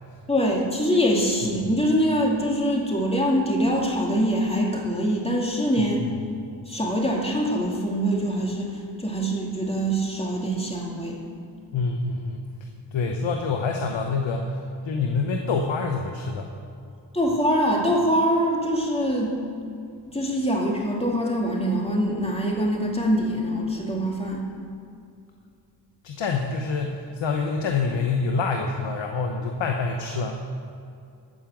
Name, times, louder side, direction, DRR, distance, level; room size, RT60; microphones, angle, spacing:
voice 1, 0.3-6.0 6.7-11.2 17.1-19.4 20.1-24.5, equal, 15° left, -2 dB, 2.5 m, -24 dB
voice 2, 11.7-12.4 12.9-16.5 26.0-30.4, left 4 dB, 90° left, 3 dB, 0.9 m, -26 dB
13.5 x 5.0 x 7.2 m, 2.4 s
cardioid pair, 45°, 44 cm